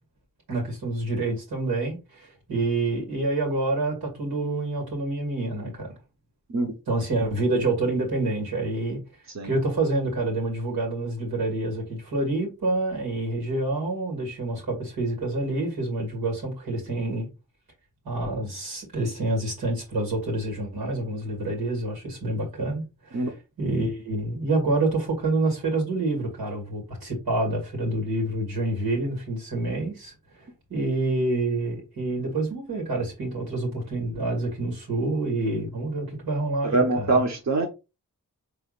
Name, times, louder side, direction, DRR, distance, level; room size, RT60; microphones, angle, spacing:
voice 1, 0.5-5.9 6.9-9.0 9.4-17.3 18.0-30.1 30.7-37.2, right 2 dB, 85° right, 2.3 m, -27 dB
voice 2, 36.6-37.7, right 2 dB, 50° right, 1.1 m, -23 dB
4.8 x 3.2 x 2.5 m
cardioid pair, 40°, 36 cm